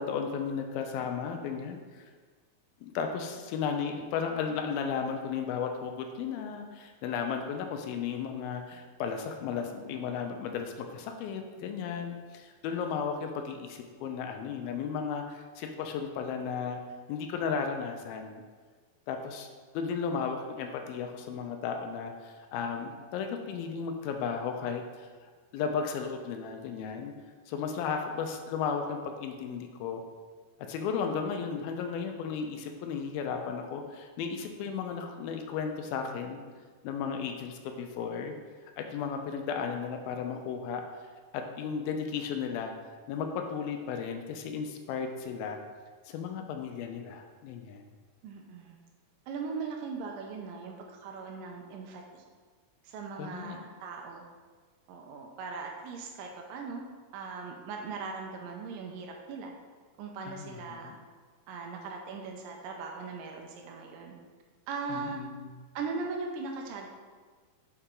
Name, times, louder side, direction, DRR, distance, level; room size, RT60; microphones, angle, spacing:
voice 1, 0.0-2.1 2.8-16.8 17.1-18.4 19.1-19.5 19.7-27.1 27.5-30.0 30.6-36.4 36.8-38.4 38.8-40.8 41.3-42.7 43.1-45.6 46.1-47.8 53.2-53.6 60.3-61.0 64.9-65.5, left 6 dB, 80° left, 4 dB, 2.3 m, -34 dB
voice 2, 48.2-48.8 49.3-52.2 52.8-54.3 54.9-56.9 57.1-59.5 60.0-61.0 61.5-64.1 64.7-65.2 65.8-66.9, right 4 dB, 85° right, 1 dB, 2.0 m, -39 dB
6.8 x 4.2 x 3.7 m, 1.5 s
omnidirectional pair, 4.4 m